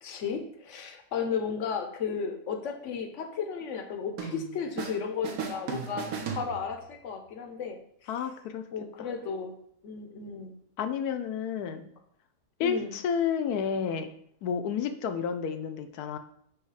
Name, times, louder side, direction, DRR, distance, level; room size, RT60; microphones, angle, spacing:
voice 1, 0.0-8.2 8.7-9.5 9.8-10.5 12.6-13.0, left 6 dB, 60° left, 6 dB, 1.0 m, -34 dB
sound 1, 4.2-5.0 5.2-7.0, right 6 dB, 70° right, 1.2 m, -36 dB
voice 2, 8.1-8.6 9.0-9.1 10.8-11.9 12.6-14.1 14.4-16.2, left 7 dB, 80° left, 8 dB, 1.1 m, -30 dB
6.4 x 3.1 x 4.7 m, 0.67 s
omnidirectional pair, 1.6 m